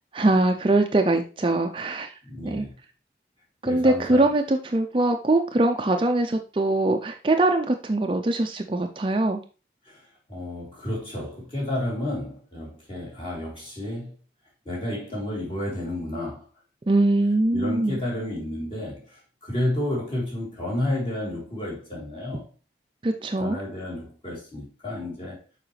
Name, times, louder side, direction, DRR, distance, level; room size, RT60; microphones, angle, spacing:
voice 1, 0.1-2.1 2.4-2.7 3.6-9.4 16.9-18.0 23.0-23.6, right 2 dB, 30° right, 0.4 m, -22 dB
voice 2, 2.2-2.7 3.6-4.3 9.8-14.1 14.6-16.5 17.5-22.5 23.4-25.4, left 1 dB, 30° left, 3.0 m, -31 dB
7.1 x 4.9 x 3.2 m
head